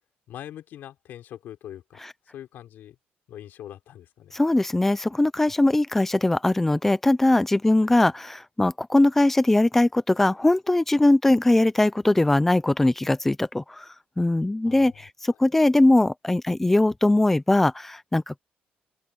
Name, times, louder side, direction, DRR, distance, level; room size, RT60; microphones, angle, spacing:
voice 1, 0.3-2.0 2.3-2.9 3.3-4.3 7.8-7.9 14.6-15.4, left 11 dB, 60° left, 5.1 m, -43 dB
voice 2, 4.3-13.9 14.2-18.4, left 2 dB, 5° left, 0.6 m, -21 dB
open air
cardioid pair, 170°, 4 cm